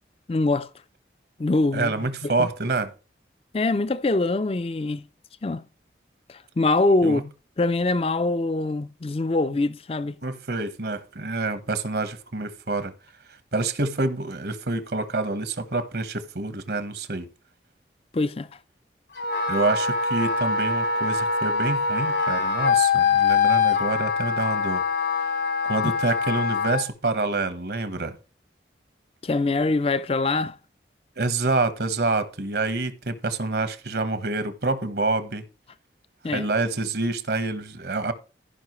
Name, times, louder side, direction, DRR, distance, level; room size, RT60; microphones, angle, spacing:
voice 1, 0.3-0.7 1.4-2.5 3.5-5.0 5.4-5.6 6.3-7.3 7.6-10.2 18.1-18.5 25.8-25.9 29.2-30.6 36.2-36.4, left 2 dB, 35° left, 0.4 m, -24 dB
voice 2, 1.7-2.9 7.0-7.2 10.2-12.9 13.5-17.3 19.5-24.8 25.6-28.2 31.2-35.4 36.2-38.1, right 3 dB, 65° right, 1.2 m, -27 dB
Wind instrument woodwind instrument, 19.2-26.9, left 5 dB, 70° left, 1.9 m, -23 dB
15.5 x 5.6 x 3.1 m
head